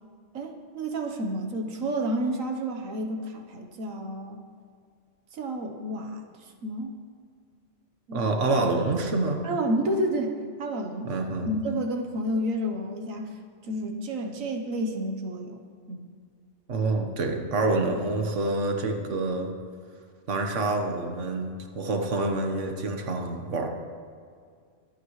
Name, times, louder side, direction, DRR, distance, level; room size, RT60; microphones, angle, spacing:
voice 1, 0.3-4.4 5.3-7.0 8.1-8.2 9.4-11.1 11.5-13.3 13.6-15.6 15.9-16.1, right 1 dB, 90° right, 3 dB, 1.5 m, -30 dB
voice 2, 8.1-9.4 11.0-11.5 16.7-19.5 20.3-23.7, right 2 dB, 70° right, 4 dB, 1.6 m, -27 dB
25.0 x 9.0 x 3.2 m, 2.1 s
omnidirectional pair, 1.3 m